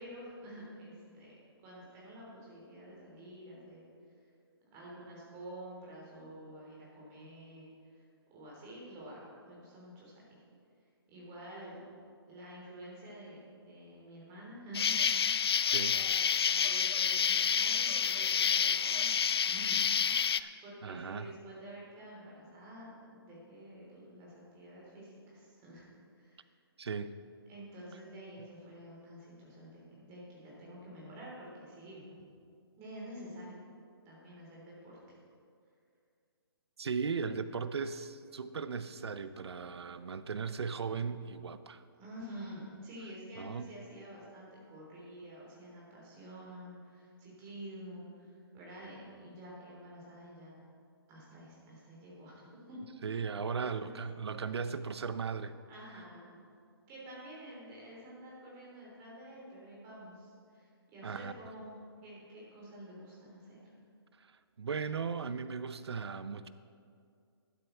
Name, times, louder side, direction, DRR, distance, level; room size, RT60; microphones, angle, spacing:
voice 1, 0.0-1.3 1.6-3.9 4.7-8.1 8.3-10.4 11.1-11.8 12.3-15.0 15.8-19.8 20.2-25.8 26.1-26.5 27.5-32.1 32.8-33.6 34.1-35.0 42.0-50.6 51.1-52.8 53.4-54.0 55.7-56.4 56.9-63.7, right 1 dB, 20° right, -5 dB, 3.5 m, -49 dB
Insect, 14.7-20.4, left 7 dB, 70° left, 0.4 m, -29 dB
voice 2, 20.8-21.3 26.8-27.1 36.8-41.8 43.4-43.7 53.0-55.6 55.9-56.0 61.0-61.3 64.2-66.5, right 5 dB, 80° right, 13 dB, 0.7 m, -37 dB
11.5 x 11.5 x 4.6 m, 2.3 s
hypercardioid pair, 160°, 13 cm